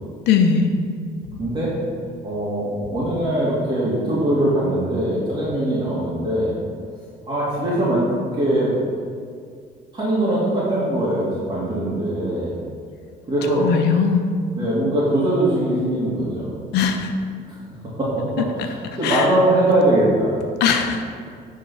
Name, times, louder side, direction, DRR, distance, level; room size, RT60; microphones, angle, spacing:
voice 1, 0.3-0.7 13.6-14.2 16.7-17.1 19.0-19.3 19.7-19.8 20.6-21.0, left 6 dB, 80° left, 5 dB, 0.9 m, -19 dB
voice 2, 1.4-1.7 2.2-6.5 7.3-8.7 9.9-12.5 13.3-13.7 14.5-16.5 18.0-20.4, right 1 dB, 25° right, -8 dB, 2.2 m, -21 dB
10.0 x 3.9 x 5.5 m, 2.2 s
cardioid pair, 110°, 17 cm